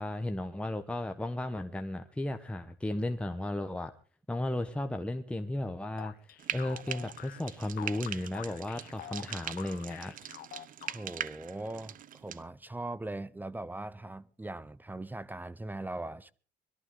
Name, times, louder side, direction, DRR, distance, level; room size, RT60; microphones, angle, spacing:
voice 1, 0.0-3.9 4.3-10.1, left 1 dB, 5° left, 1.0 m, -35 dB
sound 1, 6.0-11.3, left 13 dB, 60° left, 0.8 m, -47 dB
Frying (food), 6.4-12.4, right 10 dB, 55° right, 0.8 m, -42 dB
voice 2, 10.8-16.3, right 2 dB, 10° right, 0.7 m, -40 dB
21.5 x 13.5 x 3.8 m
cardioid pair, 110°, 17 cm